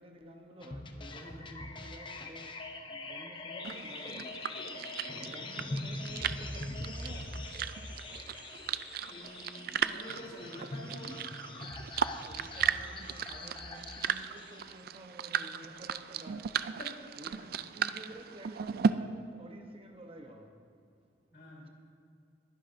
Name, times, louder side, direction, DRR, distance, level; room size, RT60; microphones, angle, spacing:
voice 1, 0.0-4.4 4.8-7.4 11.5-11.6 12.0-16.6 17.2-20.6 21.6-21.7, right 1 dB, 35° right, 0.9 m, -51 dB
sound 1, 0.6-14.7, left 2 dB, 30° left, 0.7 m, -43 dB
sound 2, 3.6-18.9, right 7 dB, 55° right, 0.3 m, -36 dB
voice 2, 9.0-11.2 16.8-17.0 17.3-17.5 17.8-17.9 21.3-21.7, left 1 dB, 60° left, 3.4 m, -47 dB
21.0 x 11.0 x 2.6 m
head